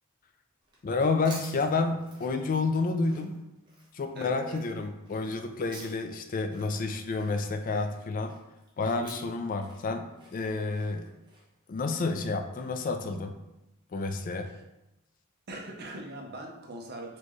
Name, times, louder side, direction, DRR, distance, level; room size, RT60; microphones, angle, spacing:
sound 1, 0.6-12.9, right 2 dB, 20° right, 0.9 m, -52 dB
voice 1, 0.8-3.4 3.9-8.3 8.8-10.1 10.3-11.1 11.7-13.4 13.9-14.5, left 3 dB, 40° left, 7 dB, 0.4 m, -30 dB
voice 2, 4.1-4.6 14.5-14.6 15.5-17.2, right 1 dB, 50° right, 1 dB, 0.7 m, -41 dB
4.2 x 3.0 x 3.1 m, 0.92 s
head